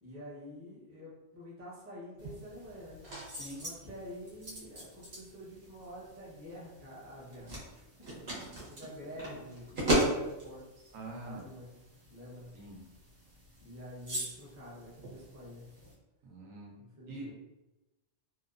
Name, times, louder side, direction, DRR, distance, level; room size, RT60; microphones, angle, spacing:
voice 1, 0.0-3.0 3.5-7.6 8.0-11.8 12.1-12.5 13.6-15.6 16.8-17.3, equal, 15° right, -7 dB, 0.5 m, -48 dB
sound 1, 2.2-15.9, right 1 dB, 55° right, 1.0 m, -38 dB
voice 2, 10.9-11.4 12.5-12.8 16.2-16.8 17.1-17.3, right 2 dB, 85° right, -1 dB, 1.1 m, -44 dB
2.8 x 2.1 x 2.4 m, 0.99 s
omnidirectional pair, 1.3 m